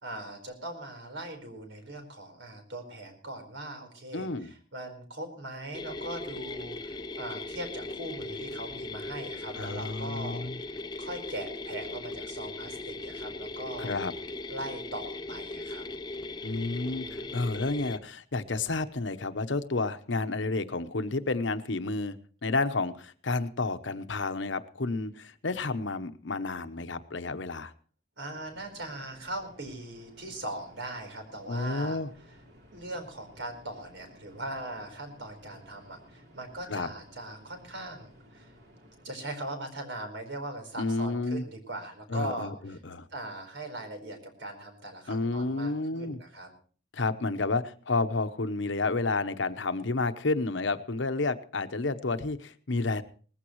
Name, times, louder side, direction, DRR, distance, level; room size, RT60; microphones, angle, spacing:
voice 1, 0.0-14.0 14.5-15.8 16.9-17.3 28.2-32.0 32.7-38.5 39.0-42.8 43.1-46.5, right 1 dB, 80° right, 5 dB, 4.6 m, -40 dB
voice 2, 4.1-4.5 9.6-10.6 13.8-14.1 16.4-27.7 31.5-32.1 36.7-36.9 40.8-41.4 42.1-42.5 42.8-43.1 45.1-46.2 46.9-53.0, left 3 dB, 80° left, 11 dB, 1.0 m, -30 dB
sound 1, 5.7-18.0, left 2 dB, 20° left, 0.6 m, -39 dB
sound 2, 28.3-39.1, equal, 60° right, 3.4 m, -56 dB
19.5 x 15.0 x 3.1 m, 0.41 s
head